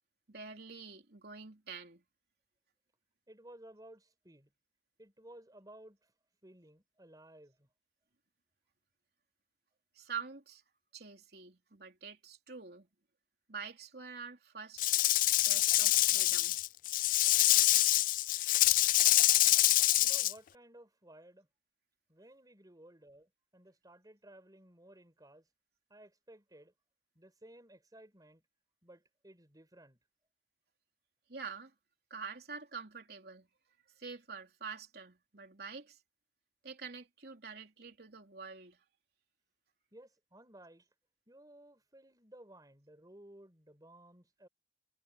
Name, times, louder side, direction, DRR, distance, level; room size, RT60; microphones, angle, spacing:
voice 1, 0.3-2.0 10.0-10.6 10.9-12.9 13.5-14.9 15.5-16.6 31.3-31.7 32.1-33.5 34.0-36.0 36.6-38.8, right 5 dB, 65° right, 3.5 m, -46 dB
voice 2, 3.3-4.5 5.0-6.1 6.4-7.7 20.0-21.5 22.1-25.4 25.9-26.7 27.2-28.4 28.8-30.0 39.9-40.9 41.3-44.5, right 1 dB, 20° right, 5.5 m, -56 dB
Rattle / Rattle (instrument), 14.8-20.3, left 16 dB, 50° left, 0.3 m, -26 dB
head